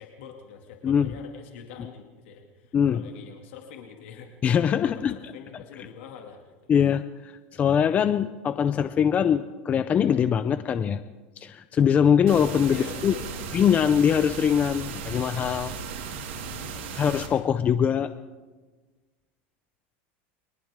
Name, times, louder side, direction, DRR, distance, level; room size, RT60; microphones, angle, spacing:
voice 1, 0.0-4.3 4.9-6.5 12.7-13.6 16.4-17.0, left 7 dB, 80° left, 2 dB, 2.4 m, -44 dB
voice 2, 2.7-3.0 4.4-5.3 6.7-11.0 11.4-13.1 13.5-15.7 16.9-18.1, left 8 dB, 25° left, 12 dB, 0.5 m, -22 dB
sound 1, 12.3-17.3, right 6 dB, 80° right, 6.2 m, -36 dB
29.5 x 23.5 x 3.7 m, 1.3 s
supercardioid pair, 155°, 6 cm